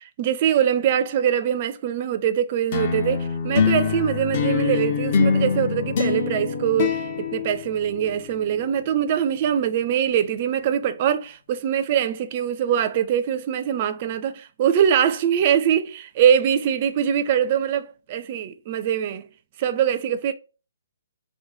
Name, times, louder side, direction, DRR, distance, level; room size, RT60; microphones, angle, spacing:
voice 1, 0.2-19.2 19.6-20.3, right 9 dB, 40° right, 0.4 m, -23 dB
sound 1, 2.7-8.3, left 6 dB, 40° left, 0.7 m, -24 dB
3.1 x 2.1 x 3.7 m
hypercardioid pair, 145°, 0 cm